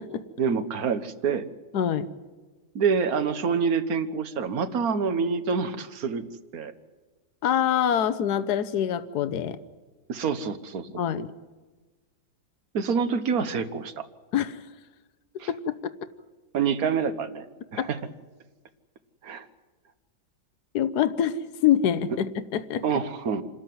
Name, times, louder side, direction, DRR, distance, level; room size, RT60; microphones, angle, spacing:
voice 1, 0.4-1.4 2.7-6.2 6.5-6.7 10.1-10.9 12.7-14.1 15.4-15.5 16.5-17.5 17.7-18.0 19.2-19.5 22.8-23.4, right 6 dB, 60° right, 11 dB, 1.6 m, -26 dB
voice 2, 1.7-2.1 7.4-9.6 11.0-11.3 14.3-14.6 15.5-15.8 17.8-17.9 20.7-22.8, left 9 dB, 70° left, 11 dB, 1.4 m, -25 dB
27.5 x 13.5 x 9.3 m, 1.3 s
omnidirectional pair, 1.8 m